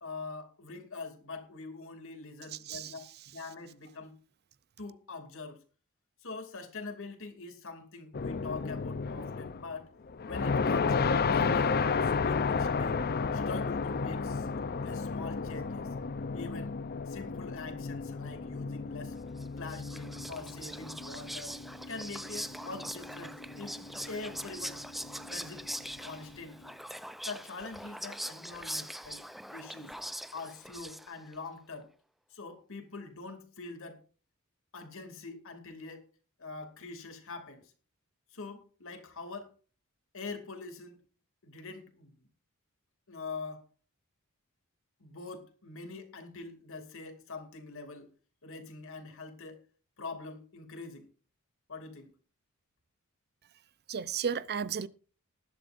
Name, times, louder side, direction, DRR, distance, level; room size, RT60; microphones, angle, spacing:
voice 1, 0.0-3.0 3.3-4.1 4.8-5.6 6.2-9.9 10.2-13.0 13.3-14.5 14.8-15.9 16.3-16.8 17.1-19.2 19.6-21.6 21.9-23.8 24.1-24.8 25.2-25.6 26.0-26.7 27.3-29.2 29.5-29.9 30.3-31.9 32.3-34.0 34.7-36.0 36.4-37.7 38.3-39.5 40.1-41.0 41.4-42.1 43.1-43.6 45.0-48.1 48.4-49.6 50.0-51.1 51.7-52.1, left 3 dB, 65° left, 2.6 m, -44 dB
voice 2, 2.5-3.1 53.9-54.9, right 7 dB, 50° right, 0.6 m, -34 dB
sound 1, 8.1-9.7 10.1-26.5, left 5 dB, 45° left, 0.6 m, -33 dB
Whispering, 19.4-31.3, equal, ahead, 0.5 m, -42 dB
19.5 x 11.5 x 2.6 m
head